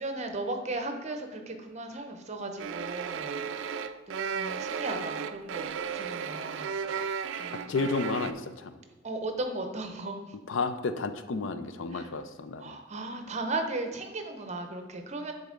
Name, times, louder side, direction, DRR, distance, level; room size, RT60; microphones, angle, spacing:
voice 1, 0.0-3.8 4.1-7.7 9.0-10.2 11.9-12.1 12.6-15.3, right 2 dB, 35° right, 5 dB, 0.7 m, -36 dB
sound 1, 2.6-8.3, right 6 dB, 65° right, 0.3 m, -34 dB
voice 2, 7.5-8.7 10.5-12.8, left 3 dB, 70° left, 10 dB, 0.5 m, -32 dB
9.8 x 4.1 x 3.7 m, 1.3 s
head